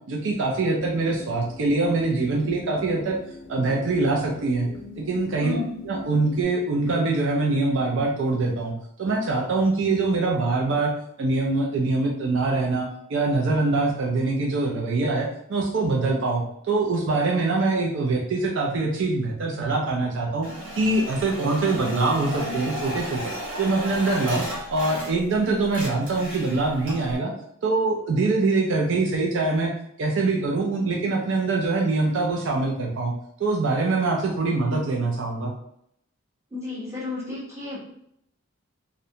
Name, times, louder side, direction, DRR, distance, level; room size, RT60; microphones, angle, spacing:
voice 1, 0.1-3.2 3.5-4.7 5.0-8.7 9.0-10.9 11.2-16.4 16.7-20.5 20.7-23.3 23.6-27.3 27.6-29.7 30.0-33.1 33.4-35.5, right 3 dB, 60° right, 0 dB, 0.4 m, -24 dB
sound 1, 0.7-6.4, left 2 dB, 75° left, 0.5 m, -43 dB
voice 2, 5.4-5.7 36.5-37.9, left 3 dB, 15° right, -8 dB, 1.0 m, -32 dB
sound 2, 20.4-25.4 25.6-27.2, equal, 85° right, 1.0 m, -34 dB
2.5 x 2.1 x 2.7 m, 0.73 s
head